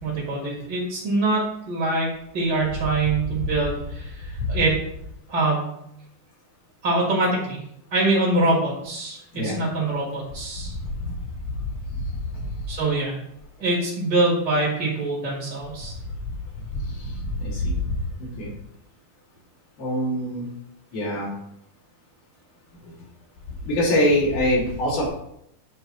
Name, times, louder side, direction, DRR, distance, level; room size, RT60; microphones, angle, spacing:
voice 1, 0.0-4.8 5.3-5.8 6.8-7.6 7.9-10.7 12.7-13.2 13.6-16.0, right 2 dB, 35° right, -4 dB, 2.0 m, -24 dB
voice 2, 17.4-17.8 18.4-18.5 19.8-20.5 20.9-21.3 23.6-25.1, equal, 70° left, -7 dB, 4.4 m, -23 dB
9.9 x 3.6 x 4.3 m, 0.76 s
omnidirectional pair, 3.8 m